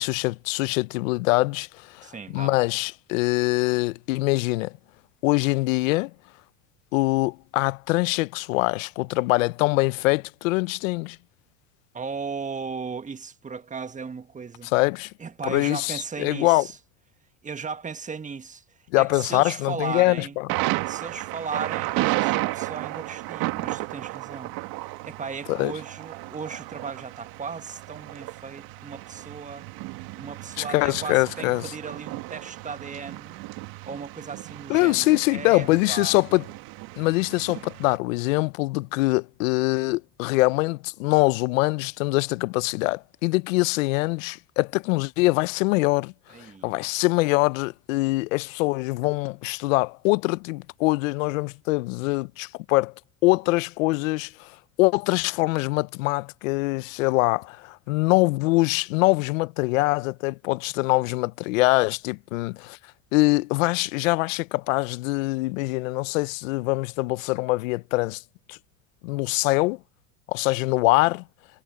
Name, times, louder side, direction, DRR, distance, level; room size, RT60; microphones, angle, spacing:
voice 1, 0.0-4.7 5.2-6.1 6.9-11.2 14.7-15.1 15.5-16.7 18.9-20.5 25.5-25.7 30.6-31.7 34.7-36.4 37.0-46.1 46.6-52.9 53.2-62.8 63.1-68.2 68.5-68.6 69.0-69.8 70.3-71.2, left 22 dB, 80° left, 0.8 m, -23 dB
voice 2, 2.0-2.6 11.9-14.7 15.2-16.8 17.4-20.4 20.9-24.6 24.8-29.7 30.2-33.4 33.8-36.2 46.3-46.8, right 5 dB, 20° right, 1.4 m, -36 dB
Thunder, 20.5-38.0, right 20 dB, 60° right, 1.7 m, -33 dB
supercardioid pair, 95°, 39 cm